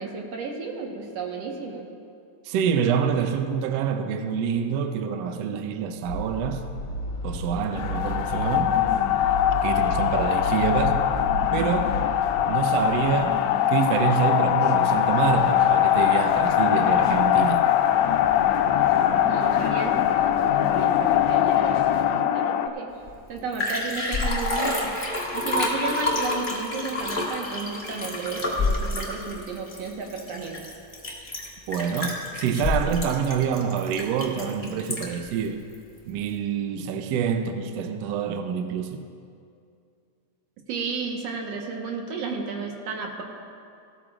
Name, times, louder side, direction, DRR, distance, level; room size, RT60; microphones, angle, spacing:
voice 1, 0.0-1.9 19.2-22.9 23.3-30.6 40.7-43.2, right 4 dB, 60° right, 0 dB, 2.2 m, -33 dB
voice 2, 2.4-6.6 7.2-8.8 9.6-11.1 11.5-12.0 12.5-17.7 31.7-35.6 36.1-39.1, right 7 dB, 75° right, 7 dB, 1.6 m, -26 dB
sound 1, 6.0-12.5, equal, 50° left, 2.9 m, -32 dB
sound 2, 7.7-22.7, left 11 dB, 80° left, 1.6 m, -22 dB
Liquid, 23.1-23.2 23.4-35.3 35.7-35.8, left 2 dB, 30° left, 0.9 m, -28 dB
17.5 x 13.5 x 2.5 m, 2.4 s
omnidirectional pair, 3.5 m